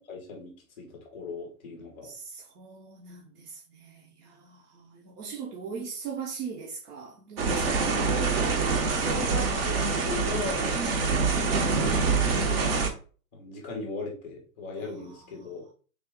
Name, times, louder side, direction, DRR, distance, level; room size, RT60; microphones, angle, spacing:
voice 1, 0.1-0.5 0.8-2.1 8.8-10.8 11.2-12.8 13.3-15.7, left 3 dB, 10° left, 0.4 m, -38 dB
voice 2, 2.0-8.0 10.8-11.3 15.0-15.5, right 6 dB, 70° right, 0.9 m, -40 dB
sound 1, 7.4-12.9, right 4 dB, 40° right, 0.7 m, -25 dB
3.5 x 2.4 x 3.6 m
hypercardioid pair, 155°, 48 cm